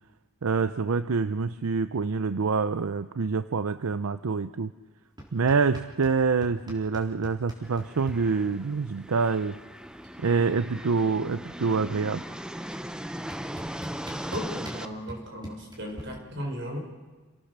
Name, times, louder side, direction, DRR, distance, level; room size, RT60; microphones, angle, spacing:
voice 1, 0.4-4.7 5.3-9.6 10.2-12.2, right 4 dB, 80° right, 13 dB, 0.6 m, -26 dB
sound 1, 5.2-6.2 6.4-8.2 9.5-9.6 9.8-10.2 10.5-11.8 12.7-12.8 13.3-16.0, equal, 20° right, 4.0 m, -43 dB
sound 2, 7.6-14.9, equal, 5° right, 0.6 m, -38 dB
voice 2, 14.3-16.8, equal, 55° right, 3 dB, 4.6 m, -36 dB
28.0 x 18.0 x 6.7 m, 1.4 s
head